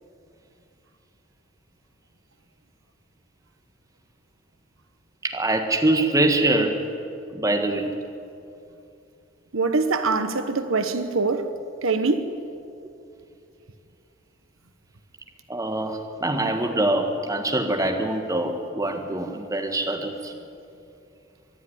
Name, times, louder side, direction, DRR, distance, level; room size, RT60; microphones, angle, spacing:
voice 1, 5.2-6.8 7.3-7.9 15.5-20.3, right 1 dB, 15° right, 1.6 m, -24 dB
voice 2, 9.5-11.5 11.8-12.3, right 3 dB, 85° right, 1.1 m, -23 dB
24.5 x 11.0 x 10.0 m
head